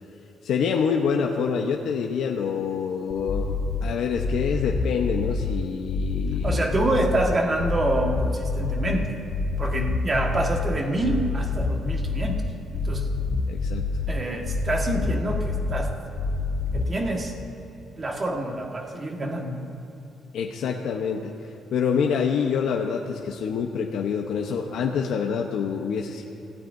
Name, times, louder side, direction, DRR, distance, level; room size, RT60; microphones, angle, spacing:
voice 1, 0.4-3.6 3.8-6.9 13.5-13.9 20.3-21.3 21.7-26.2, left 6 dB, 75° left, 1 dB, 0.9 m, -26 dB
sound 1, 3.1-3.8 4.2-5.5 5.9-7.3 7.6-9.0 9.3-10.7 11.0-12.4 12.7-14.1 14.4-15.8 16.2-16.8, left 5 dB, 55° left, 3.4 m, -27 dB
voice 2, 6.4-9.2 9.6-12.4 12.7-13.1 14.1-15.9 16.7-17.3 18.0-19.5, right 1 dB, 25° right, 1 dB, 1.7 m, -27 dB
27.5 x 16.0 x 2.7 m, 3.0 s
cardioid pair, 155°, 0 cm